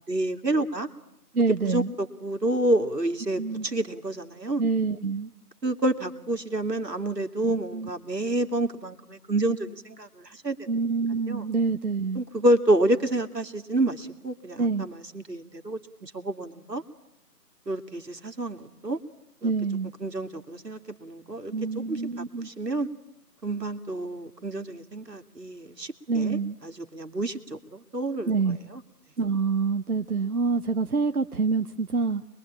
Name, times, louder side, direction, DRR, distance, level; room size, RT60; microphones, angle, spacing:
voice 1, 0.1-0.9 1.6-4.6 5.6-10.7 11.3-11.4 12.2-16.8 17.7-19.0 19.4-19.5 20.0-21.5 21.9-22.9 23.4-26.4 26.6-28.3, right 1 dB, 85° right, 7 dB, 2.6 m, -28 dB
voice 2, 1.3-1.9 3.4-3.7 4.6-5.3 7.4-7.9 10.7-12.2 14.6-14.9 19.4-19.9 21.5-22.5 26.1-26.6 28.3-28.6 29.2-32.3, right 4 dB, 65° right, 7 dB, 1.2 m, -26 dB
25.5 x 22.5 x 8.7 m, 0.85 s
figure-of-eight pair, 165°, 48 cm